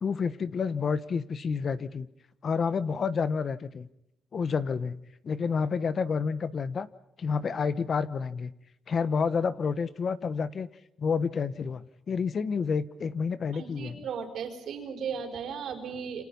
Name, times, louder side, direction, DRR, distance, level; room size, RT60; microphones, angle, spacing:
voice 1, 0.0-2.1 2.4-3.9 4.3-6.9 7.2-8.5 8.9-10.7 11.0-14.0, left 5 dB, 50° left, 15 dB, 1.2 m, -29 dB
voice 2, 13.5-16.2, right 6 dB, 70° right, 5 dB, 4.7 m, -36 dB
28.0 x 26.5 x 5.5 m, 0.82 s
cardioid pair, 90°, 0 cm